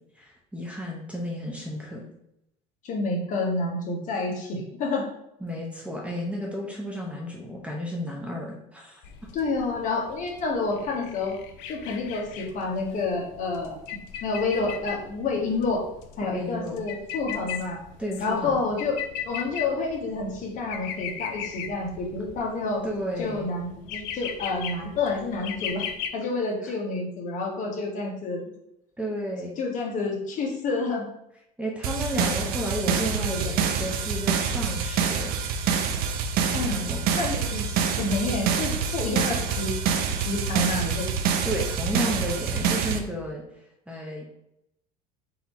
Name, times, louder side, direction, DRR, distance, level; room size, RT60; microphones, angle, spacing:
voice 1, 0.2-2.0 5.4-9.0 16.2-16.8 18.0-18.6 22.8-23.5 26.6-26.7 29.0-29.6 31.6-35.3 36.6-37.2 41.4-43.4 43.9-44.2, equal, 5° right, -2 dB, 0.6 m, -32 dB
voice 2, 2.8-5.1 9.3-11.4 11.7-13.8 14.2-15.8 16.2-17.8 18.2-22.9 23.2-25.9 26.1-28.4 29.6-31.1 32.4-33.5 36.5-36.8 37.1-41.1, left 3 dB, 40° left, 0 dB, 1.1 m, -29 dB
sound 1, 9.0-26.1, left 9 dB, 65° left, 0.5 m, -38 dB
sound 2, 31.8-43.0, right 6 dB, 50° right, 0.5 m, -26 dB
4.1 x 2.7 x 4.1 m, 0.81 s
supercardioid pair, 130°, 20 cm